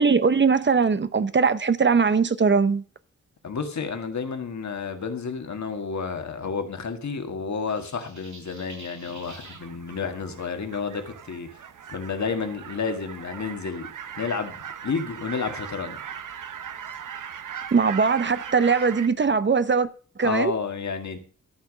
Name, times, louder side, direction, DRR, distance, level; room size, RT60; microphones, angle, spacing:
voice 1, 0.0-2.8 17.7-19.9 20.2-20.5, right 5 dB, 40° right, 0.6 m, -20 dB
voice 2, 3.4-11.5 11.9-13.9 14.2-16.0 20.2-21.2, left 5 dB, 65° left, 1.8 m, -30 dB
sound 1, 7.7-9.6, right 3 dB, 70° right, 4.9 m, -47 dB
sound 2, 9.3-19.1, right 8 dB, 90° right, 0.8 m, -39 dB
13.0 x 5.8 x 6.4 m
wide cardioid pair, 145°, 30 cm